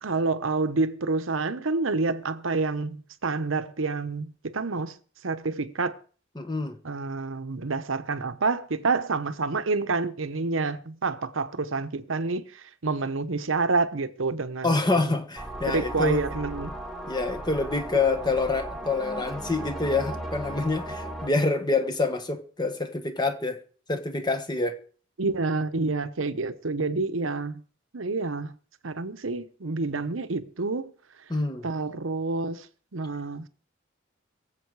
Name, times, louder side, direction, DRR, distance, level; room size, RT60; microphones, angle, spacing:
voice 1, 0.0-4.9 5.2-6.0 6.8-15.1 15.7-16.7 25.2-27.6 27.9-28.6 28.8-30.9 31.6-32.7 32.9-33.5, right 3 dB, 75° right, 0.9 m, -28 dB
voice 2, 6.3-6.8 14.6-16.2 17.0-23.6 23.9-24.8 31.3-31.7, left 3 dB, 20° left, 1.2 m, -26 dB
sound 1, 15.4-21.3, right 1 dB, ahead, 1.7 m, -36 dB
22.5 x 7.6 x 4.7 m
head